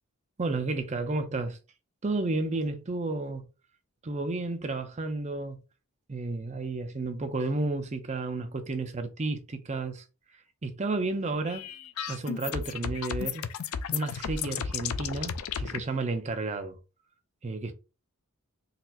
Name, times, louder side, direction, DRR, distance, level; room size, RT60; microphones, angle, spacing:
voice 1, 0.4-1.6 2.0-3.4 4.0-5.6 6.1-10.0 10.6-11.7 12.1-13.4 13.9-16.8 17.4-17.7, right 3 dB, 30° right, 0.5 m, -32 dB
sound 1, 11.5-15.8, left 7 dB, 75° left, 0.4 m, -34 dB
4.0 x 2.8 x 2.5 m
head